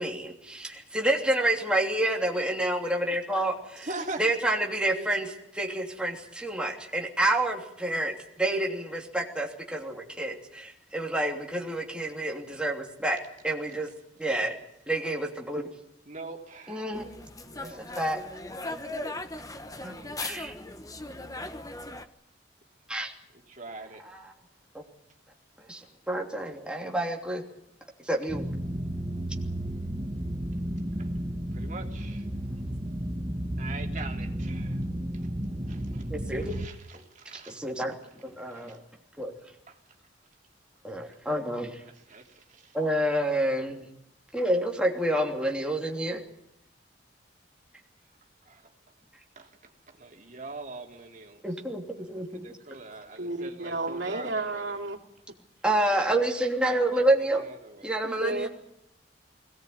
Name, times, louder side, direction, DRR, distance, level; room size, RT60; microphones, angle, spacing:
voice 1, 0.0-3.9 4.2-13.9 14.2-14.6 14.9-15.6 16.7-17.1 17.6-18.2 19.8-19.9 20.2-20.5 22.9-23.1 24.0-24.3 25.7-27.4 28.0-28.5 36.1-36.5 36.9-37.0 37.5-38.0 38.2-38.8 39.2-39.3 40.8-41.8 42.7-43.9 44.3-46.2 51.4-52.6 55.6-57.4 57.8-58.5, right 1 dB, 5° right, 0 dB, 3.0 m, -28 dB
voice 2, 3.8-4.2 4.9-5.1 16.1-17.1 17.5-17.8 19.8-20.1 23.5-24.0 31.0-31.1 31.5-32.3 33.6-34.8 35.7-36.1 36.3-37.6 38.5-38.8 41.8-42.8 48.4-48.7 49.3-49.5 49.9-51.4 52.4-54.8 56.9-57.9, right 3 dB, 45° right, 3 dB, 3.2 m, -43 dB
sound 1, 16.9-22.1, left 2 dB, 20° left, 1.2 m, -38 dB
sound 2, 28.3-36.7, right 1 dB, 20° right, 1.3 m, -33 dB
voice 3, 53.2-55.0 58.0-58.5, right 2 dB, 85° right, 4 dB, 2.9 m, -32 dB
21.5 x 18.0 x 9.4 m, 0.79 s
head